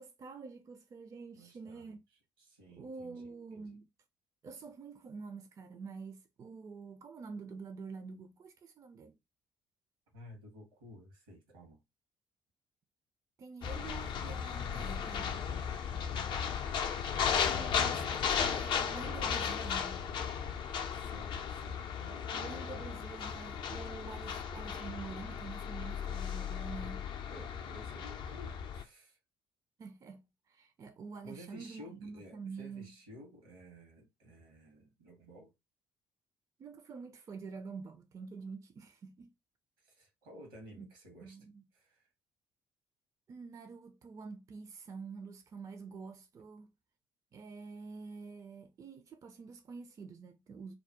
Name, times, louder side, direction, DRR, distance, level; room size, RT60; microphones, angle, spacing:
voice 1, 0.0-2.0 2.7-3.9 4.4-9.2 13.4-15.2 17.4-20.1 22.3-27.0 29.8-32.9 36.6-39.3 40.8-40.9 41.2-41.6 43.3-46.7 47.3-50.7, right 4 dB, 30° right, 0.4 m, -47 dB
voice 2, 1.3-2.0 2.4-3.8 10.1-11.8 14.7-15.5 20.9-22.5 24.2-24.3 27.3-29.2 31.2-35.5 39.8-41.4 41.7-42.0, equal, 75° right, 0.9 m, -53 dB
sound 1, 13.6-28.8, left 7 dB, 45° left, 0.4 m, -35 dB
2.3 x 2.0 x 2.7 m
figure-of-eight pair, 45°, 11 cm